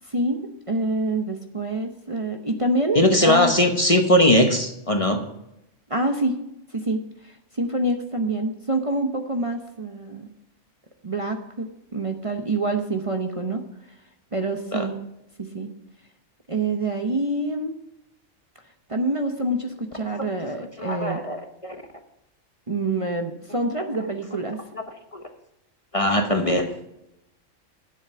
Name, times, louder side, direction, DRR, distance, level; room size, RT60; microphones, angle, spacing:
voice 1, 0.0-3.5 5.9-6.4 6.7-10.3 11.0-13.6 14.3-15.0 15.4-15.7 16.5-17.8 18.9-21.2 22.7-24.6, right 2 dB, 30° right, 4 dB, 0.9 m, -26 dB
voice 2, 2.9-5.2 14.7-14.9 20.8-21.8 24.8-24.9 25.1-25.2 25.9-26.7, left 1 dB, 30° left, 5 dB, 1.0 m, -20 dB
11.0 x 7.7 x 6.8 m, 0.85 s
omnidirectional pair, 1.3 m